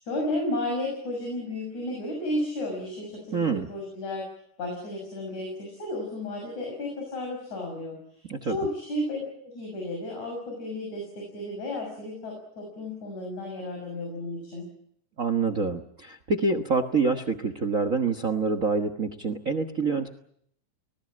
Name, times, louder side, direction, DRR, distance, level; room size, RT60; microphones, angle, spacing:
voice 1, 0.0-4.3 4.6-8.0 8.5-14.7, left 1 dB, 60° left, 0 dB, 7.9 m, -33 dB
voice 2, 3.3-3.7 8.3-8.6 15.2-20.1, right 4 dB, 60° right, 11 dB, 0.8 m, -26 dB
25.0 x 19.5 x 8.7 m, 0.70 s
omnidirectional pair, 3.7 m